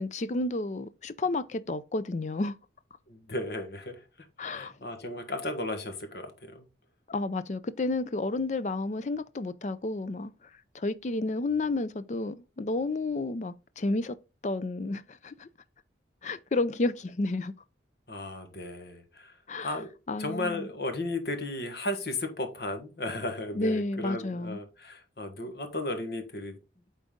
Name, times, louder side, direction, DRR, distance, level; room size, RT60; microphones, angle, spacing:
voice 1, 0.0-2.5 4.4-4.7 7.1-10.3 10.7-14.2 14.4-15.5 16.2-17.5 19.5-19.8 20.1-20.7 23.5-24.6, left 2 dB, 40° left, 0.4 m, -31 dB
voice 2, 3.1-4.3 4.5-6.6 18.1-19.4 19.6-19.9 20.2-26.6, left 1 dB, 60° left, 1.3 m, -35 dB
8.8 x 4.0 x 3.7 m
head